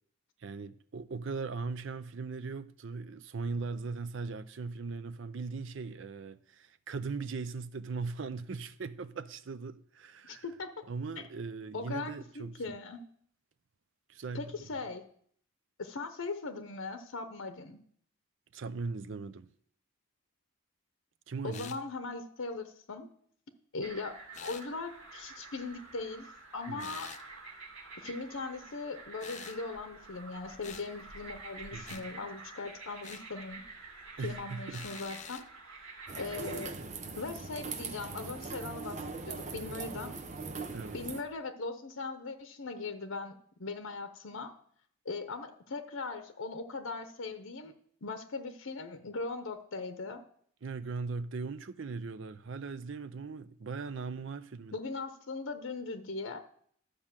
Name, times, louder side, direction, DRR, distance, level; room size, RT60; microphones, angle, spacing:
voice 1, 0.4-10.4 10.9-12.6 14.1-14.7 18.5-19.5 21.3-21.8 26.7-27.0 31.7-32.0 34.2-34.9 40.7-41.0 50.6-54.8, right 4 dB, 70° right, 0.5 m, -39 dB
voice 2, 10.2-10.7 11.2-11.3 11.7-13.0 14.3-15.0 15.8-17.8 21.4-23.1 23.7-26.3 26.5-27.1 28.0-33.6 34.2-35.4 36.2-36.7 37.2-40.1 40.9-43.3 43.6-44.5 45.0-47.7 48.0-50.2 54.7-56.4, left 3 dB, 85° left, 0.8 m, -39 dB
sound 1, 21.5-21.8 24.3-24.7 26.8-27.2 29.2-29.6 30.6-30.9 31.9-32.1 33.0-33.3 34.7-35.5, left 8 dB, 35° left, 0.4 m, -46 dB
sound 2, 23.8-36.7, right 3 dB, 90° right, 2.3 m, -49 dB
sound 3, 36.1-41.2, right 4 dB, 35° right, 0.7 m, -41 dB
11.5 x 5.1 x 7.4 m
head